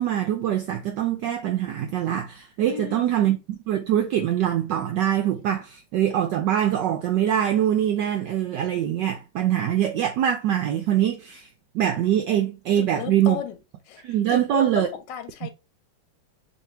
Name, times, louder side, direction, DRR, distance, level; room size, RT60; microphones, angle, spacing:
voice 1, 0.0-11.5 11.7-13.4 14.0-14.9, right 11 dB, 80° right, 1.0 m, -23 dB
voice 2, 2.7-3.1 12.8-13.6 13.9-14.0 14.3-15.5, left 9 dB, 65° left, 1.2 m, -34 dB
3.3 x 2.8 x 4.3 m
omnidirectional pair, 2.4 m